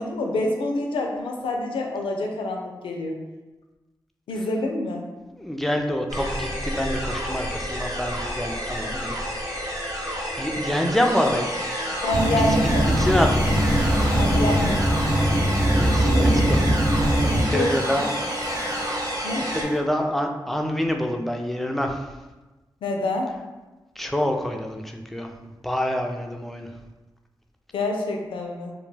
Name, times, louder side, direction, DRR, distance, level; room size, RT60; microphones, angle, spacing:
voice 1, 0.0-3.2 4.3-5.0 12.0-13.0 14.2-14.8 17.3-18.0 19.2-19.5 22.8-23.3 27.7-28.7, left 1 dB, 85° left, 2 dB, 0.4 m, -27 dB
voice 2, 5.2-9.2 10.4-11.5 12.3-12.4 12.8-13.4 15.6-16.8 17.5-18.1 18.4-18.6 19.5-22.0 24.0-25.3 25.6-26.7, left 1 dB, ahead, 3 dB, 0.3 m, -26 dB
sound 1, 6.1-19.6, equal, 45° right, 0.7 m, -29 dB
sound 2, 12.1-17.4, equal, 85° right, 0.5 m, -21 dB
sound 3, 13.4-19.8, equal, 15° right, 0.9 m, -38 dB
2.2 x 2.2 x 3.1 m, 1.1 s
cardioid pair, 50°, 9 cm